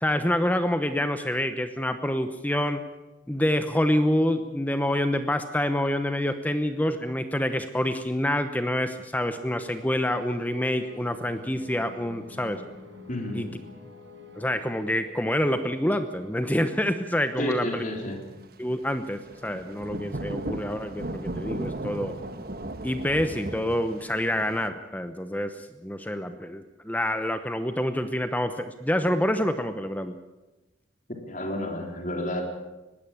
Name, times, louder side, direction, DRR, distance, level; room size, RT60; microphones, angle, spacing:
voice 1, 0.0-2.8 3.3-12.6 13.3-13.5 14.4-17.8 18.6-22.1 22.8-30.1, left 1 dB, 10° left, 9 dB, 0.9 m, -27 dB
sound 1, 9.1-17.5, left 4 dB, 70° right, 4.6 m, -48 dB
voice 2, 13.1-13.6 17.4-18.2 31.2-32.4, left 1 dB, 40° left, 3 dB, 3.7 m, -31 dB
Thunder / Rain, 19.2-24.7, right 1 dB, 50° right, 1.3 m, -36 dB
20.0 x 16.0 x 8.6 m, 1.0 s
head